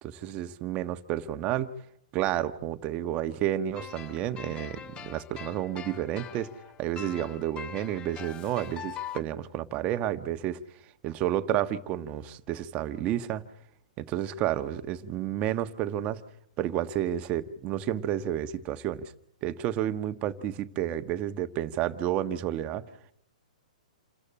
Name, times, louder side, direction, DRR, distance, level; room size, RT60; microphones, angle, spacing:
voice 1, 0.0-1.7 2.1-6.5 6.8-10.6 11.0-13.4 14.0-16.2 16.6-19.1 19.4-22.8, right 11 dB, 30° right, 10 dB, 1.4 m, -30 dB
sound 1, 3.8-9.2, left 8 dB, 20° left, 0.9 m, -43 dB
28.5 x 14.0 x 8.8 m, 0.73 s
hypercardioid pair, 130°, 4 cm